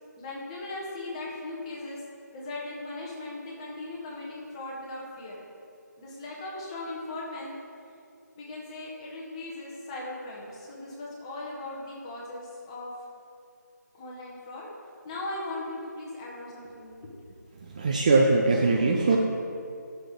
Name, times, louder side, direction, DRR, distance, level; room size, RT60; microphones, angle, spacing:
voice 1, 0.2-2.0 2.3-5.4 6.0-7.5 8.4-12.9 13.9-14.7 15.0-17.1, left 2 dB, 20° left, -4 dB, 1.5 m, -38 dB
voice 2, 17.6-19.2, right 3 dB, 25° right, 0 dB, 0.5 m, -22 dB
12.0 x 6.7 x 3.8 m, 2.5 s
figure-of-eight pair, 160°, 10 cm